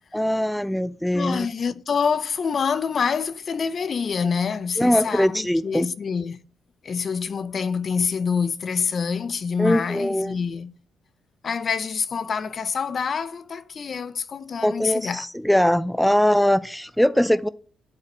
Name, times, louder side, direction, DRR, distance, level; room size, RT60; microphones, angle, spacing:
voice 1, 0.1-1.5 4.8-5.9 9.6-10.4 14.6-17.5, equal, 5° left, 0.4 m, -21 dB
voice 2, 1.1-6.4 6.8-10.7 11.4-15.2, left 6 dB, 45° left, 0.8 m, -26 dB
11.0 x 4.8 x 7.5 m
cardioid pair, 90°, 0 cm